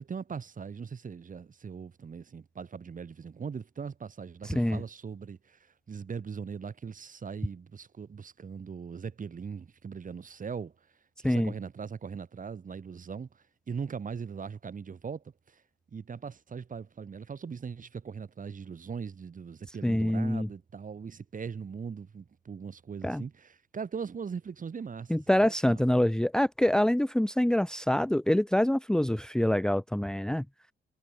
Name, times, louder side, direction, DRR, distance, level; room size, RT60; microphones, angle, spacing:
voice 1, 0.0-5.6 5.9-10.7 11.2-13.3 13.7-15.2 15.9-25.7, right 6 dB, 40° right, 6.5 m, -40 dB
voice 2, 4.4-4.8 11.2-11.5 19.8-20.5 23.0-23.2 25.1-30.4, left 1 dB, 5° left, 1.1 m, -25 dB
cardioid pair, 90°, 20 cm